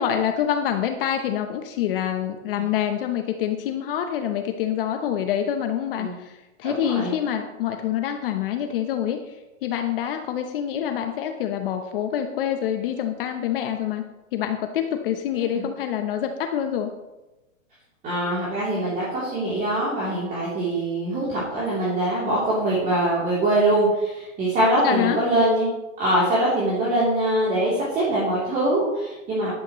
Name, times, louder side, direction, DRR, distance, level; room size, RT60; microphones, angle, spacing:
voice 1, 0.0-14.0 14.3-16.9 24.8-25.2, left 9 dB, 45° left, 6 dB, 0.9 m, -26 dB
voice 2, 6.6-7.1 15.5-15.6 18.0-25.7 26.0-29.5, right 1 dB, 20° right, -8 dB, 3.2 m, -23 dB
12.0 x 11.5 x 3.1 m, 1.0 s
hypercardioid pair, 150°, 40 cm